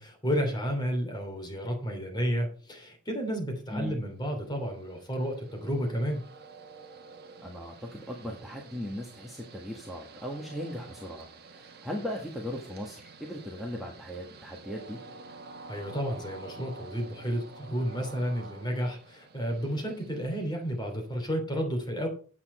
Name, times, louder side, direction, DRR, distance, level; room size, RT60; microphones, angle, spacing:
voice 1, 0.0-6.2 15.7-22.1, equal, 20° left, 3 dB, 2.8 m, -31 dB
Train, 4.3-21.0, right 3 dB, 45° right, 1.4 m, -49 dB
voice 2, 7.4-15.0, equal, ahead, -2 dB, 1.5 m, -38 dB
8.9 x 8.4 x 4.3 m, 0.40 s
head